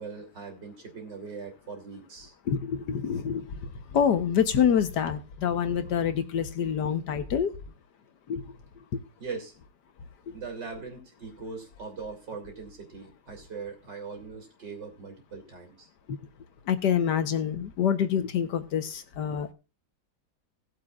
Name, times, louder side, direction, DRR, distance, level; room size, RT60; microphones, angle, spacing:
voice 1, 0.0-2.3 9.2-9.5 10.3-15.9, right 5 dB, 75° right, 3 dB, 3.6 m, -40 dB
voice 2, 2.5-7.5 8.3-8.4 16.1-16.2 16.7-19.5, left 8 dB, 70° left, 10 dB, 1.6 m, -26 dB
18.5 x 7.7 x 2.4 m, 0.30 s
omnidirectional pair, 1.9 m